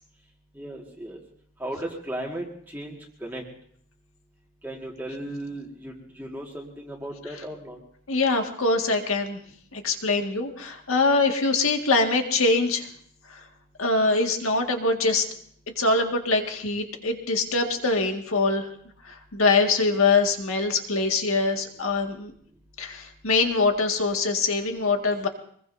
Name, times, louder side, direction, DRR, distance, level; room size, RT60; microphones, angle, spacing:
voice 1, 0.6-1.2 1.6-3.4 4.6-7.8, right 1 dB, 10° right, -2 dB, 1.8 m, -36 dB
voice 2, 8.1-9.4 9.7-12.9 13.3-13.4 13.8-15.2 15.8-18.7 19.1-22.3 22.8-25.3, left 3 dB, 90° left, 4 dB, 1.9 m, -23 dB
24.5 x 21.5 x 2.7 m, 0.62 s
head